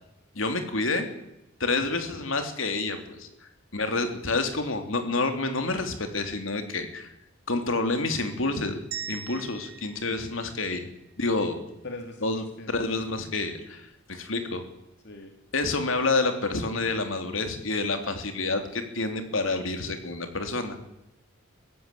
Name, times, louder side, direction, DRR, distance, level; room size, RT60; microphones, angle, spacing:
voice 1, 0.3-1.1 1.6-3.3 3.7-7.1 7.5-8.8 9.1-10.9 11.2-11.6 12.2-14.6 15.5-20.8, left 3 dB, 70° left, 6 dB, 3.1 m, -28 dB
sound 1, 8.9-11.2, right 8 dB, 50° right, 2.9 m, -41 dB
voice 2, 11.8-12.9 15.0-15.3, left 2 dB, 55° left, 4 dB, 2.2 m, -41 dB
23.5 x 15.5 x 8.5 m, 0.86 s
head